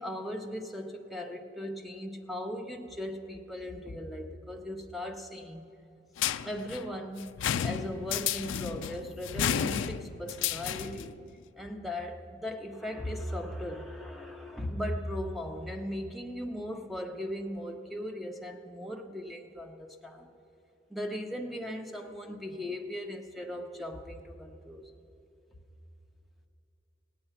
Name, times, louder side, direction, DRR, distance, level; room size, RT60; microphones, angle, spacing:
voice 1, 0.0-5.7 6.4-11.2 11.6-20.3 20.9-25.0, left 1 dB, ahead, 4 dB, 0.8 m, -38 dB
sound 1, 6.2-11.1, left 9 dB, 80° left, 0.4 m, -32 dB
17.0 x 8.9 x 5.7 m, 2.8 s
head